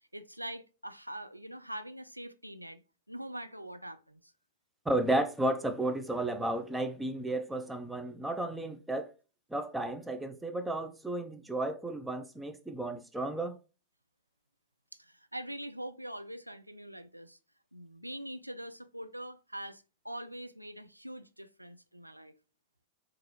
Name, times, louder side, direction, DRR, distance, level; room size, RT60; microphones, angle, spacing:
voice 1, 0.1-2.8 3.1-4.3 14.9-17.4 17.7-22.3, right 1 dB, 90° right, 0.3 m, -43 dB
voice 2, 4.9-9.1 9.5-13.6, right 1 dB, 5° right, 0.5 m, -33 dB
4.6 x 2.5 x 2.9 m
figure-of-eight pair, 90°, 0 cm